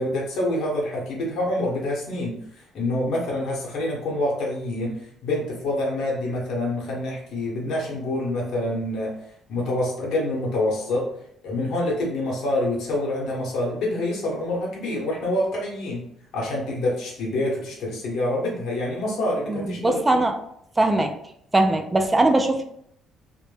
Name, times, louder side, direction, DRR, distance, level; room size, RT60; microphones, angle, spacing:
voice 1, 0.0-9.2 9.5-11.1 11.4-16.1 16.3-20.0, left 1 dB, 70° left, -3 dB, 0.8 m, -26 dB
voice 2, 19.5-20.3 20.8-21.1 21.5-22.6, right 2 dB, 15° right, 5 dB, 0.3 m, -20 dB
2.1 x 2.1 x 3.1 m, 0.72 s
cardioid pair, 110°, 0 cm